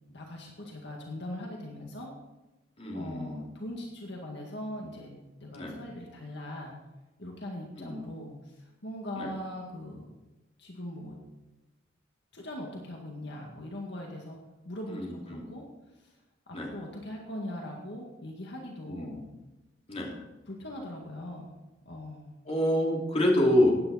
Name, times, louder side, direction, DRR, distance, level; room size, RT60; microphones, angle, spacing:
voice 1, 0.1-2.1 2.9-5.1 5.4-6.8 7.2-10.1 10.6-11.2 12.3-14.4 14.7-15.7 16.5-19.3 20.5-21.5 21.9-22.3, left 1 dB, 65° left, 0 dB, 2.0 m, -40 dB
voice 2, 2.8-3.4 5.5-5.8 7.8-8.0 9.2-9.3 14.9-15.5 16.5-16.7 18.9-19.2 19.9-20.1 22.4-23.7, left 1 dB, 35° left, -2 dB, 2.9 m, -27 dB
15.5 x 10.0 x 4.2 m, 1.1 s
head